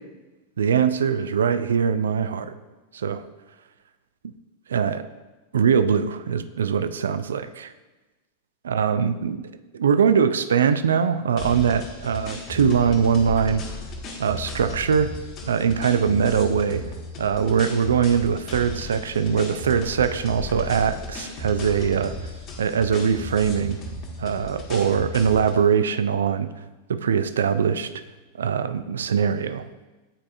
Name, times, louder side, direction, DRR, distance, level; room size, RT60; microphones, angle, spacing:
voice 1, 0.6-2.5 2.9-3.2 4.7-5.0 5.5-7.7 8.6-9.4 9.7-13.7 14.2-15.1 15.4-16.8 17.2-22.2 22.6-23.8 24.2-26.5 26.9-27.9 28.4-29.7, right 7 dB, 65° right, 12 dB, 0.3 m, -22 dB
sound 1, 11.4-25.6, left 1 dB, 35° left, 1.3 m, -35 dB
8.7 x 4.7 x 2.6 m, 1.2 s
figure-of-eight pair, 90°, 0 cm